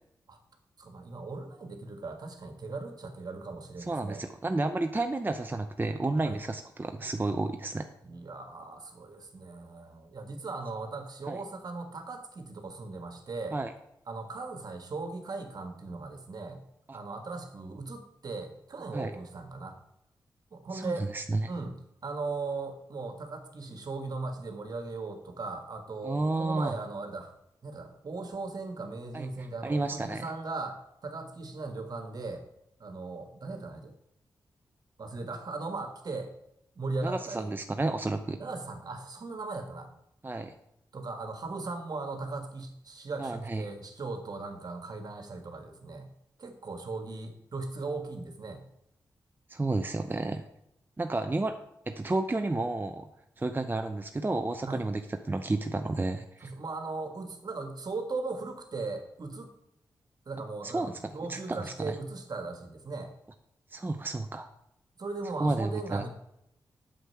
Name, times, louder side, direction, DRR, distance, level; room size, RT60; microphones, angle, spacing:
voice 1, 0.8-4.2 6.2-6.4 8.0-13.6 14.1-16.6 16.9-19.8 20.5-21.1 21.5-21.8 22.0-27.3 27.6-32.4 32.8-33.9 35.0-36.3 36.7-37.5 38.4-39.9 40.9-46.1 46.4-48.6 54.6-54.8 56.4-59.5 60.2-63.1 65.0-66.1, right 3 dB, 60° right, 6 dB, 1.6 m, -38 dB
voice 2, 3.9-7.9 11.3-11.4 13.5-13.7 16.9-17.0 18.9-19.1 20.7-21.5 26.0-26.7 29.1-29.3 29.6-30.3 37.0-38.4 40.2-40.5 43.2-43.6 49.5-50.4 51.0-51.5 51.9-53.1 53.4-55.0 55.3-56.5 60.6-60.9 61.3-62.0 63.7-64.5 65.4-66.0, right 2 dB, 25° right, 6 dB, 0.7 m, -31 dB
8.0 x 6.5 x 5.8 m, 0.80 s
supercardioid pair, 45°, 8 cm